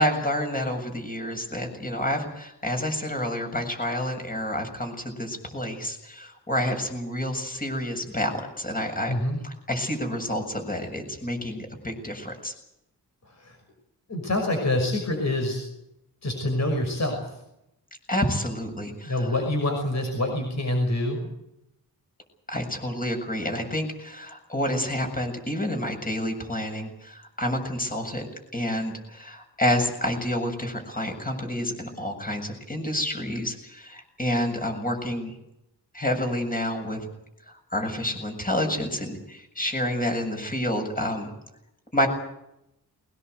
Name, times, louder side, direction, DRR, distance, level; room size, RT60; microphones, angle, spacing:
voice 1, 0.0-9.1 9.4-12.5 18.1-19.3 22.5-28.3 28.5-35.3 35.9-37.0 37.7-41.3 41.9-42.1, left 1 dB, 20° left, 4 dB, 7.5 m, -29 dB
voice 2, 9.1-9.4 13.4-13.6 14.1-15.6 16.2-17.2 19.0-21.3, left 1 dB, 45° left, 3 dB, 6.0 m, -26 dB
22.5 x 20.5 x 8.1 m, 0.84 s
wide cardioid pair, 120°, 40 cm